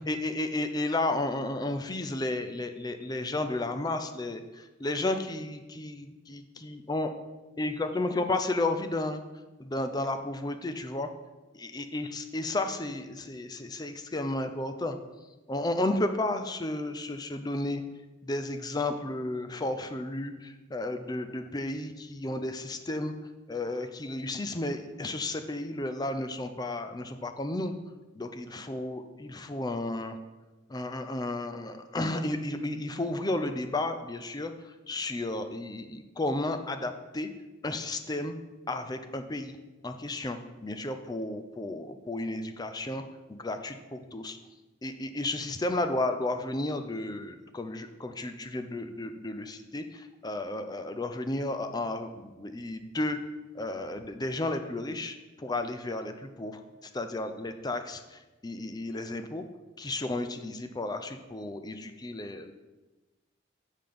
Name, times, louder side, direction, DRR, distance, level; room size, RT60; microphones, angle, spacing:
voice 1, 0.1-7.1 7.6-9.2 9.6-11.1 11.5-15.0 15.5-17.8 18.2-23.1 23.5-27.7 28.2-30.2 30.7-37.3 37.6-38.3 38.7-39.6 39.8-43.0 43.3-44.4 44.8-53.2 53.5-56.6 56.9-59.4 59.8-62.5, left 2 dB, 20° left, 8 dB, 0.5 m, -33 dB
7.8 x 5.1 x 5.3 m, 1.1 s
head